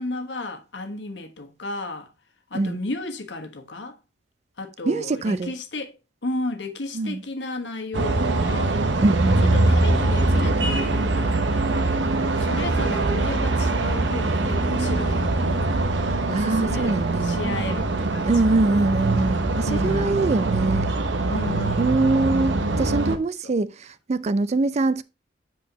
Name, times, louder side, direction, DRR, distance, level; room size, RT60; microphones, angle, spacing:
voice 1, 0.0-2.1 2.5-4.0 4.6-5.9 6.2-8.8 9.5-11.9 12.4-15.8 16.3-16.9 17.2-18.3 19.5-20.4 21.3-22.0, left 2 dB, 80° left, 1.3 m, -33 dB
voice 2, 4.8-5.5 6.9-7.2 9.0-9.9 16.3-17.3 18.2-20.9 21.8-25.0, right 3 dB, 40° right, 0.4 m, -23 dB
sound 1, 7.9-23.2, right 2 dB, 90° right, 0.9 m, -23 dB
8.1 x 4.6 x 2.9 m
head